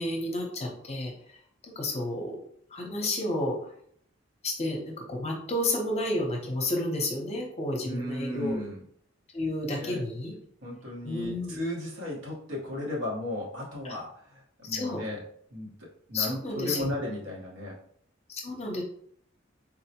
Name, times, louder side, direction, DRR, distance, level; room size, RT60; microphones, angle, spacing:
voice 1, 0.0-1.4 1.8-2.4 2.7-3.6 4.4-8.6 9.3-10.3 11.0-11.6 14.6-15.0 16.1-16.9 18.3-18.8, left 1 dB, 35° left, 0 dB, 0.7 m, -31 dB
voice 2, 7.8-8.8 9.8-10.0 10.6-15.2 15.5-17.8, left 1 dB, 85° right, -3 dB, 1.1 m, -35 dB
3.8 x 2.0 x 2.8 m, 0.65 s
head